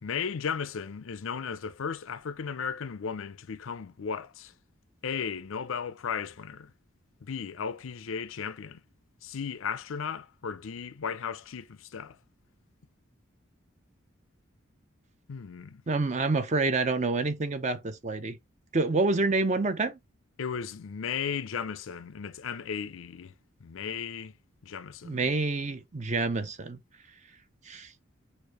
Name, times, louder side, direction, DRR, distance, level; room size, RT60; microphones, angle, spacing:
voice 1, 0.0-4.5 5.0-6.7 7.2-8.8 9.2-12.2 15.3-15.8 20.4-23.3 23.6-24.3 24.6-25.3, left 6 dB, 75° left, 0.5 m, -35 dB
voice 2, 15.9-18.4 18.7-20.0 25.0-26.8 27.7-27.9, right 3 dB, 35° right, 0.5 m, -27 dB
6.6 x 2.5 x 2.9 m
head